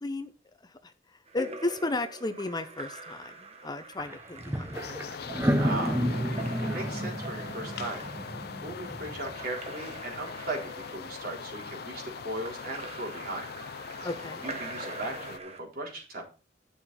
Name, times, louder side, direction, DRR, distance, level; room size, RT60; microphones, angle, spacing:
voice 1, 0.0-0.3 0.6-0.9 1.3-4.8 5.2-5.3 14.0-14.4, left 2 dB, 25° left, 10 dB, 0.7 m, -34 dB
Splash splatter / Drip / Trickle dribble, 1.3-15.6, right 3 dB, 35° right, 1.4 m, -44 dB
sound 1, 4.0-4.1 4.4-9.3, equal, 15° right, 0.7 m, -31 dB
sound 2, 4.7-15.4, left 6 dB, 60° left, 0.5 m, -41 dB
voice 2, 5.6-6.0 6.3-8.1 8.6-13.5 14.4-16.2, right 1 dB, 55° right, -1 dB, 4.1 m, -38 dB
10.5 x 6.9 x 4.2 m, 0.34 s
head